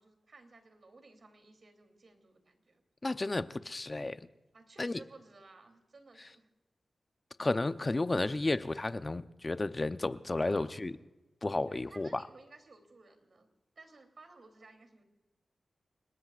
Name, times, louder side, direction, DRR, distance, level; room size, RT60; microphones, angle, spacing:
voice 1, 0.0-2.8 4.5-6.5 10.4-10.7 11.7-13.5 13.7-15.0, right 3 dB, 55° right, 6 dB, 3.2 m, -56 dB
voice 2, 3.0-4.2 4.8-4.9 7.4-10.9 11.4-12.2, left 2 dB, 30° left, 11 dB, 0.8 m, -32 dB
30.0 x 19.0 x 2.5 m, 1.1 s
wide cardioid pair, 100°, 0 cm